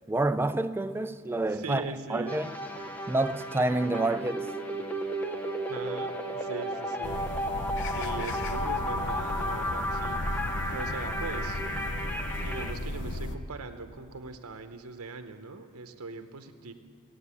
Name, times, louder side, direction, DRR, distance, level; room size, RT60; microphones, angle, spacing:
voice 1, 0.1-1.8 2.1-2.5 3.1-4.5, right 2 dB, 10° right, 0.3 m, -28 dB
voice 2, 1.5-2.4 5.7-7.2 7.9-10.2 10.7-11.6 12.4-16.7, right 3 dB, 75° right, 0.9 m, -40 dB
sound 1, 2.3-12.7, equal, 5° left, 0.8 m, -33 dB
sound 2, 7.0-13.4, left 1 dB, 55° left, 0.7 m, -35 dB
16.5 x 8.1 x 8.3 m
head